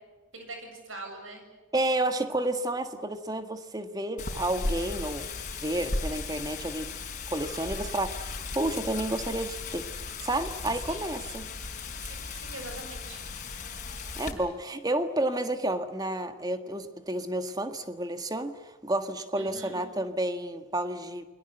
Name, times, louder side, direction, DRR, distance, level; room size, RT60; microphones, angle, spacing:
voice 1, 0.3-1.4 10.8-11.1 12.0-13.2 19.4-19.8, right 2 dB, 80° right, 4 dB, 7.8 m, -43 dB
voice 2, 1.7-5.3 5.6-6.9 7.3-8.3 8.5-9.9 10.2-11.5 14.2-21.2, right 1 dB, 20° right, 9 dB, 1.7 m, -30 dB
Wind, 4.2-14.3, left 3 dB, 40° left, 4.3 m, -36 dB
29.5 x 22.5 x 8.0 m, 1.3 s
head